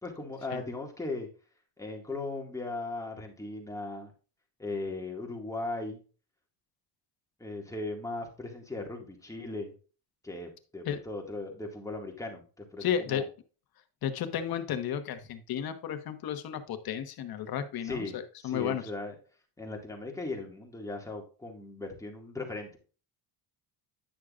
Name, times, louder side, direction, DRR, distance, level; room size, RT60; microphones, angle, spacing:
voice 1, 0.0-1.3 1.8-4.1 4.6-6.0 7.4-9.7 10.2-13.3 17.8-19.2 19.6-22.8, left 2 dB, 5° left, 1 dB, 2.1 m, -38 dB
voice 2, 12.8-13.2 14.0-18.8, left 9 dB, 55° left, 9 dB, 1.3 m, -33 dB
10.5 x 6.3 x 2.5 m, 0.36 s
cardioid pair, 135°, 45 cm